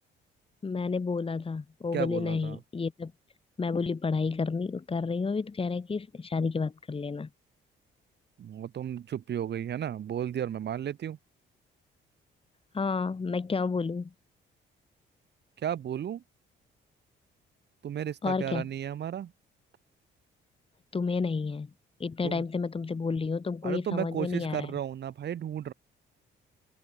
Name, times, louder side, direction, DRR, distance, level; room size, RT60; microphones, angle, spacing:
voice 1, 0.6-3.1 3.6-7.3 12.7-14.1 18.2-18.7 20.9-21.7 22.0-24.7, left 4 dB, 30° left, 2.1 m, -30 dB
voice 2, 1.9-2.6 8.4-11.2 15.6-16.2 17.8-19.3 22.2-22.4 23.6-25.7, right 9 dB, 60° right, 1.5 m, -34 dB
open air
cardioid pair, 90°, 20 cm